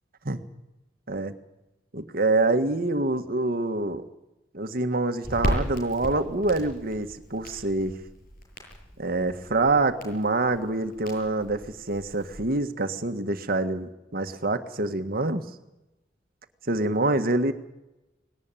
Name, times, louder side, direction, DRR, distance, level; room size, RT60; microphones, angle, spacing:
voice 1, 1.9-4.0 4.5-8.0 9.0-11.6 11.9-15.4 16.7-17.5, right 2 dB, 50° right, 8 dB, 1.7 m, -26 dB
Crackle, 5.2-12.6, equal, 50° left, 7.8 m, -36 dB
20.0 x 18.5 x 9.1 m, 0.95 s
head